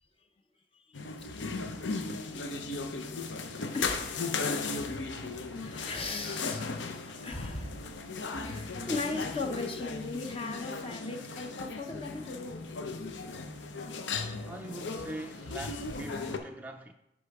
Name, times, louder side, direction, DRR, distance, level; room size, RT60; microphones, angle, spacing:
voice 1, 0.7-1.3 3.7-4.3 5.6-12.7, left 3 dB, 30° left, 0.7 m, -38 dB
sound 1, 0.9-16.4, left 4 dB, 85° left, 0.7 m, -36 dB
voice 2, 6.8-7.1 14.4-16.9, right 1 dB, 10° right, 0.3 m, -44 dB
10.0 x 3.7 x 4.7 m
head